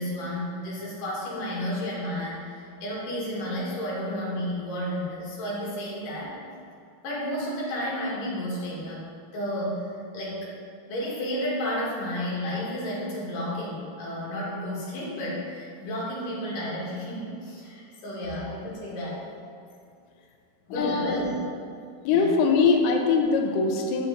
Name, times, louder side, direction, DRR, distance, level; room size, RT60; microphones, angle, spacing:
voice 1, 0.0-6.4 7.0-9.1 9.3-9.9 10.1-10.4 10.9-19.2 20.7-21.3 22.1-22.3, equal, 60° left, -6 dB, 3.1 m, -32 dB
voice 2, 20.7-21.2 22.1-24.1, left 4 dB, 85° left, 3 dB, 2.0 m, -22 dB
7.1 x 6.5 x 3.9 m, 2.3 s
omnidirectional pair, 4.6 m